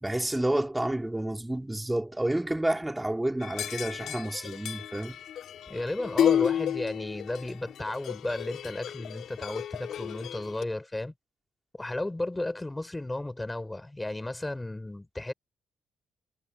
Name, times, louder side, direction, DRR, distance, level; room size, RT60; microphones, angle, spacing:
voice 1, 0.0-5.2, right 1 dB, 10° right, 4.6 m, -29 dB
sound 1, 3.4-10.6, left 10 dB, 70° left, 3.8 m, -32 dB
voice 2, 5.7-11.1 11.8-15.3, left 2 dB, 10° left, 6.3 m, -34 dB
cardioid pair, 90°, 0 cm